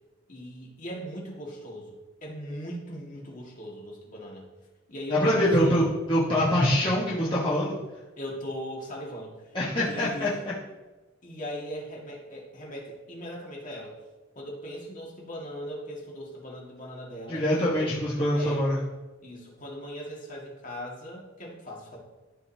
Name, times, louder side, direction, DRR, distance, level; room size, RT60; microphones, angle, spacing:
voice 1, 0.3-4.5 4.9-6.0 8.2-10.4 11.2-14.0 14.4-18.0 18.3-18.7 19.2-22.0, equal, 40° left, -3 dB, 2.0 m, -39 dB
voice 2, 5.1-7.8 9.5-10.3 17.3-18.8, equal, 25° left, -8 dB, 1.3 m, -24 dB
13.0 x 5.2 x 2.8 m, 1.2 s
head